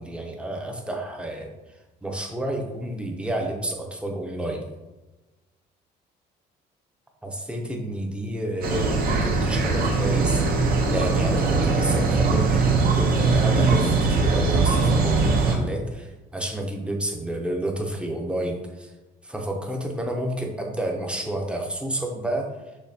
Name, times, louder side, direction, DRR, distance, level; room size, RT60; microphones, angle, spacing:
voice 1, 0.0-1.5 2.0-4.6 7.2-18.9 19.2-22.5, right 1 dB, 5° right, 1 dB, 0.7 m, -30 dB
sound 1, 8.6-15.5, right 4 dB, 60° right, 0.9 m, -21 dB
6.3 x 2.8 x 2.8 m, 1.1 s
cardioid pair, 110°, 17 cm